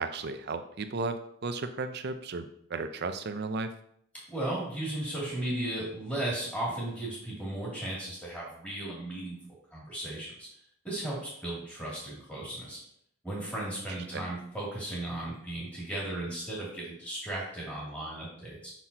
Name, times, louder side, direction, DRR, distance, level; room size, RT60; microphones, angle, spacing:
voice 1, 0.0-3.7 14.1-14.3, right 3 dB, 55° right, 9 dB, 0.5 m, -34 dB
voice 2, 4.3-9.4 9.7-10.5 10.8-12.8 13.2-18.7, right 1 dB, 5° left, -7 dB, 2.7 m, -35 dB
6.0 x 5.8 x 2.8 m, 0.68 s
head